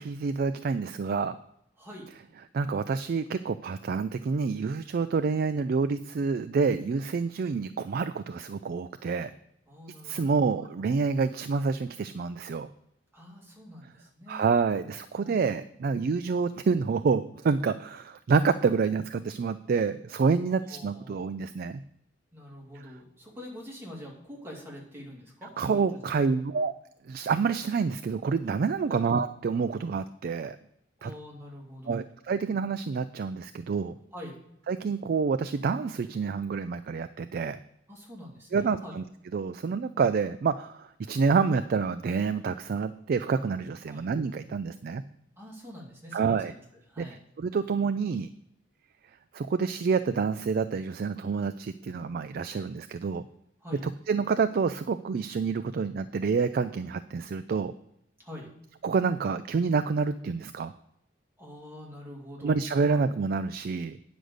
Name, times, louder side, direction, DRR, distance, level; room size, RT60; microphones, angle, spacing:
voice 1, 0.0-1.4 2.5-9.3 10.0-12.7 14.3-21.8 25.6-26.7 27.1-30.6 31.0-31.1 31.9-33.9 34.7-37.6 38.5-39.0 39.3-45.0 46.1-46.5 47.0-47.1 47.4-48.3 49.3-53.2 53.8-57.7 58.8-60.7 62.4-64.0, right 5 dB, 50° right, 11 dB, 0.3 m, -28 dB
voice 2, 7.4-7.8 9.7-10.4 13.1-14.4 15.2-15.4 20.5-21.2 22.3-26.0 28.9-29.0 31.0-32.0 34.1-34.4 37.9-39.0 43.9-44.0 45.4-46.4 46.9-47.2 53.6-53.8 58.2-58.5 61.4-63.0, left 1 dB, 10° right, -3 dB, 2.3 m, -45 dB
9.5 x 5.1 x 6.4 m, 0.78 s
head